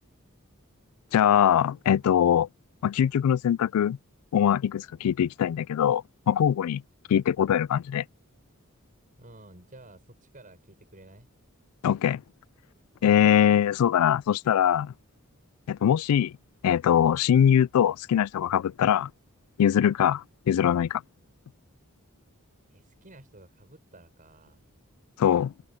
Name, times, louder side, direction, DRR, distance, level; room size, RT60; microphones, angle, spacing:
voice 1, 1.1-2.5 2.8-4.0 4.3-6.8 7.1-8.0 11.8-12.2 13.0-14.9 15.7-16.3 16.6-19.1 19.6-21.0 25.2-25.5, left 9 dB, 90° left, 0.3 m, -22 dB
voice 2, 9.2-11.3 22.7-24.6, right 2 dB, 40° right, 7.1 m, -52 dB
head